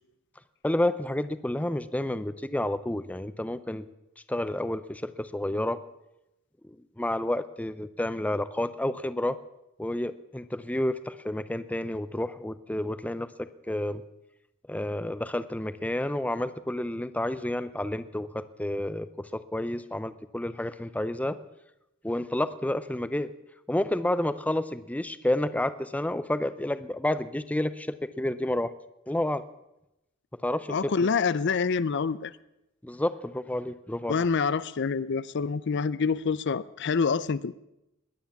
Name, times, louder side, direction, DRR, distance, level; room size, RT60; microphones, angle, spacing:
voice 1, 0.6-3.9 4.3-5.8 6.6-9.4 9.8-14.0 14.7-21.4 22.0-23.3 23.7-28.7 29.1-29.4 30.4-30.8 32.8-34.2, left 1 dB, 5° left, 14 dB, 0.5 m, -30 dB
voice 2, 30.7-32.3 34.1-37.5, left 5 dB, 55° left, 17 dB, 0.5 m, -26 dB
20.5 x 9.7 x 7.1 m, 0.90 s
head